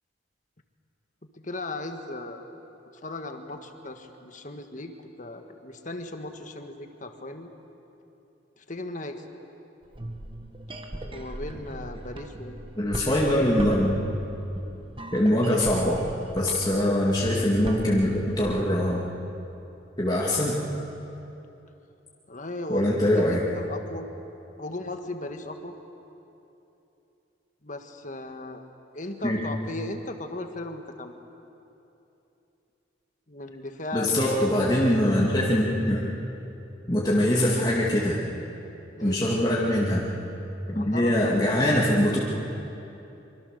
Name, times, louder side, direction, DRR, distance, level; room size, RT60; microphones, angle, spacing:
voice 1, 1.3-2.4 3.0-4.9 5.2-7.5 8.6-9.2 11.1-12.6 22.3-24.0 24.6-25.7 27.6-28.6 28.9-31.1 33.3-34.4 39.0-39.2 40.7-41.3, left 2 dB, 40° left, 6 dB, 1.6 m, -37 dB
sound 1, 9.8-18.6, right 1 dB, 25° right, 1.6 m, -39 dB
voice 2, 12.8-14.0 15.1-16.1 16.4-19.0 20.0-20.6 22.7-23.4 29.2-29.4 33.9-36.1 36.9-38.2 39.0-40.1 40.7-42.2, left 1 dB, 20° left, -5 dB, 2.3 m, -23 dB
25.0 x 24.5 x 6.8 m, 2.9 s
head